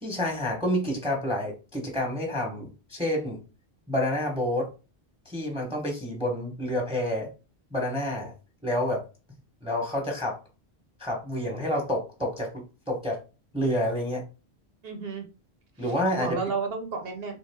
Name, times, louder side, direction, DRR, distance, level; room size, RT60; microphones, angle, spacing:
voice 1, 0.0-3.4 3.9-4.7 5.3-7.3 7.7-8.3 8.6-9.0 9.6-10.4 11.0-13.2 13.5-14.2 15.8-16.4, left 1 dB, 5° right, 1 dB, 0.8 m, -28 dB
voice 2, 14.8-15.3 15.8-17.4, right 4 dB, 65° right, 3 dB, 0.9 m, -32 dB
3.4 x 3.1 x 3.4 m, 0.32 s
omnidirectional pair, 1.1 m